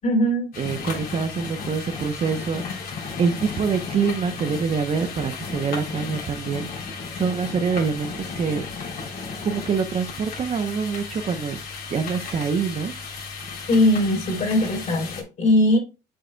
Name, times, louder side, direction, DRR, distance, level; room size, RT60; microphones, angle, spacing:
voice 1, 0.0-0.5 13.7-15.1 15.4-15.8, left 1 dB, 45° left, 1 dB, 4.0 m, -19 dB
sound 1, 0.5-15.2, left 5 dB, 60° left, 3.3 m, -34 dB
voice 2, 0.6-2.6 3.2-6.7 7.1-8.6 9.4-11.6 11.9-12.9, right 5 dB, 40° right, 8 dB, 0.8 m, -25 dB
7.6 x 7.4 x 2.2 m, 0.31 s
cardioid pair, 110°, 17 cm